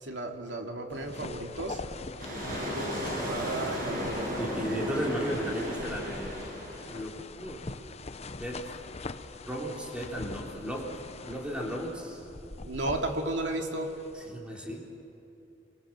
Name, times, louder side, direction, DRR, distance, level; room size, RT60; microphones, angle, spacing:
voice 1, 0.0-1.8 3.3-4.4 12.6-13.9, right 2 dB, 85° right, 3 dB, 2.6 m, -33 dB
sound 1, 0.9-14.3, left 3 dB, 35° left, 0.8 m, -43 dB
sound 2, 2.2-7.1, equal, 50° right, 6.6 m, -35 dB
voice 2, 4.3-7.8 8.4-8.7 9.5-12.3 14.1-14.9, equal, 5° right, -2 dB, 3.7 m, -35 dB
27.0 x 23.0 x 7.5 m, 2.8 s
head